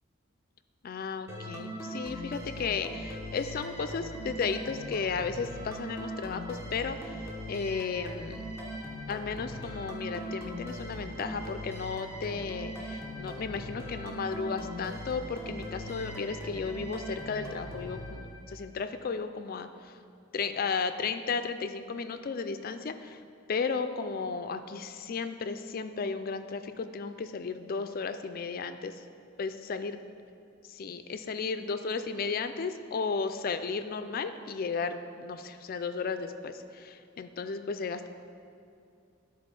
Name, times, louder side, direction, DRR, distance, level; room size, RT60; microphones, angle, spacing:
voice 1, 0.8-7.0 7.5-8.4 9.1-19.7 20.3-23.2 23.5-28.9 29.4-30.0 30.7-38.1, left 5 dB, 45° left, 9 dB, 0.4 m, -34 dB
sound 1, 1.3-18.8, equal, 15° right, 0.9 m, -40 dB
11.0 x 4.0 x 5.2 m, 2.5 s
head